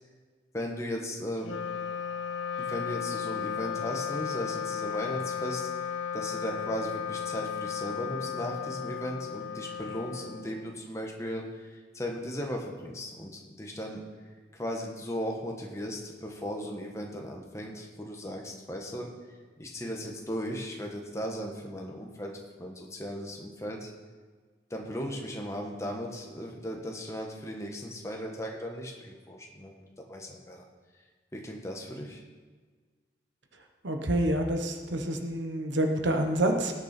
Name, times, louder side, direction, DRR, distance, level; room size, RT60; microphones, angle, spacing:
voice 1, 0.5-1.6 2.6-5.7 6.1-14.0 14.5-22.3 22.6-23.9 24.7-30.6 31.3-32.2, equal, 15° left, 0 dB, 1.3 m, -37 dB
Wind instrument woodwind instrument, 1.4-11.0, left 7 dB, 90° left, 0.8 m, -35 dB
voice 2, 33.8-36.7, right 1 dB, 75° right, 4 dB, 1.2 m, -27 dB
18.0 x 6.7 x 4.4 m, 1.4 s
head